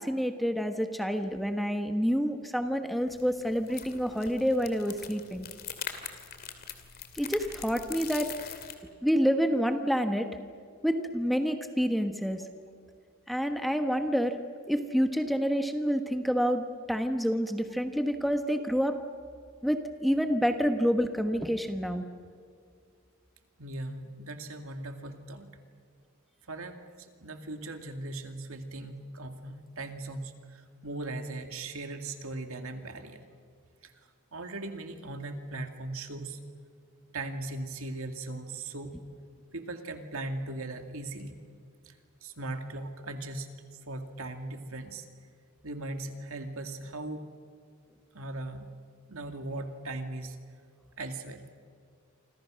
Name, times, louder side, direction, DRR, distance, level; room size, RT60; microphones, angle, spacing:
voice 1, 0.0-5.5 7.1-8.6 9.0-10.3 10.8-12.4 13.3-14.4 14.7-19.0 19.6-22.0, equal, ahead, 6 dB, 1.2 m, -28 dB
sound 1, 3.1-8.7, left 8 dB, 45° left, 2.5 m, -42 dB
voice 2, 23.6-25.5 26.5-33.2 33.8-33.9 34.3-36.4 37.1-39.0 39.5-41.4 41.9-45.1 45.6-47.2 48.1-48.7 49.1-50.4 51.0-51.5, right 2 dB, 70° right, 5 dB, 2.4 m, -39 dB
28.5 x 26.0 x 6.4 m, 2.2 s
head